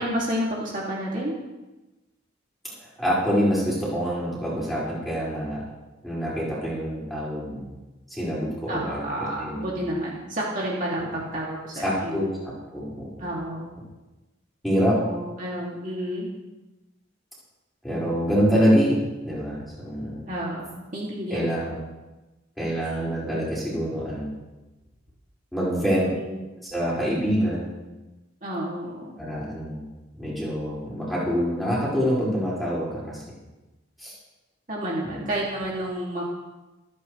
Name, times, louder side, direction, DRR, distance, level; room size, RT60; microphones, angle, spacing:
voice 1, 0.0-1.3 8.7-12.3 13.2-13.7 14.9-16.3 20.3-21.7 26.0-26.3 28.4-29.1 34.7-36.2, right 1 dB, 40° right, -5 dB, 2.7 m, -30 dB
voice 2, 2.8-5.6 6.0-7.7 8.1-9.0 9.4-9.9 11.8-12.3 12.7-13.3 14.6-15.0 17.8-20.3 21.3-21.8 22.6-24.3 25.5-26.1 26.7-27.8 29.2-29.8 30.2-33.2 34.0-34.1 35.0-35.2, equal, ahead, -8 dB, 5.5 m, -25 dB
26.0 x 9.4 x 3.4 m, 1.1 s
head